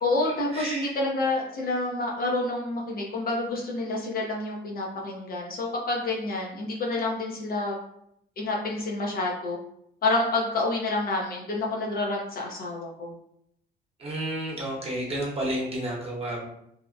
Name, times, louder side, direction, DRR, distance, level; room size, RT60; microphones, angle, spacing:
voice 1, 0.0-7.8 8.4-9.6 10.0-13.1, left 2 dB, 50° left, -2 dB, 0.6 m, -28 dB
voice 2, 0.5-0.9 14.0-16.5, right 1 dB, 30° right, -3 dB, 0.9 m, -31 dB
2.6 x 2.1 x 2.5 m, 0.74 s
cardioid pair, 90°, 20 cm